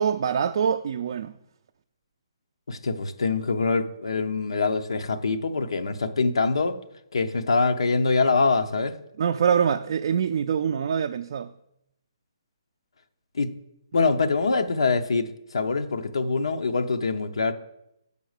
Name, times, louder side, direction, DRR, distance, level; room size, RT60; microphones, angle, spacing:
voice 1, 0.0-1.3 9.2-11.5, right 7 dB, 50° right, 0.3 m, -24 dB
voice 2, 2.7-6.8 7.1-9.0 13.3-13.5 13.9-17.5, left 4 dB, 90° left, 0.7 m, -24 dB
7.0 x 5.3 x 6.5 m
hypercardioid pair, 165°, 3 cm